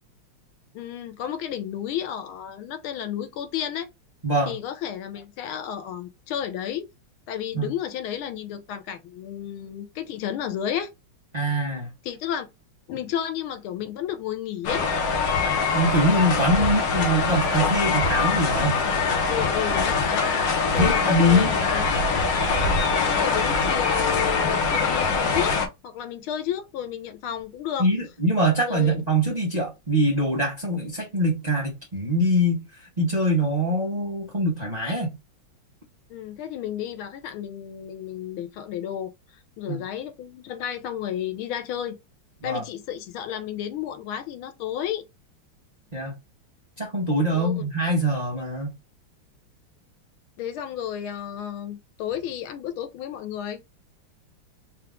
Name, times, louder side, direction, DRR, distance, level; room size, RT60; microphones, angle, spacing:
voice 1, 0.7-3.9 4.5-6.9 7.3-10.9 12.0-12.5 12.9-14.9 16.4-16.7 19.3-20.2 20.7-21.9 23.1-25.6 25.8-27.9 28.7-29.0 36.1-39.1 39.6-42.0 42.4-45.0 47.3-47.7 50.4-53.6, left 10 dB, 80° left, 1.5 m, -32 dB
voice 2, 4.2-4.5 7.5-7.7 11.3-11.9 15.7-18.8 20.8-21.5 27.8-32.6 33.0-35.2 39.7-39.8 42.4-42.6 45.9-46.1 46.8-48.8, equal, 30° right, 0.8 m, -23 dB
sound 1, 14.6-25.7, left 4 dB, 65° left, 1.6 m, -23 dB
4.5 x 2.4 x 3.5 m
omnidirectional pair, 2.3 m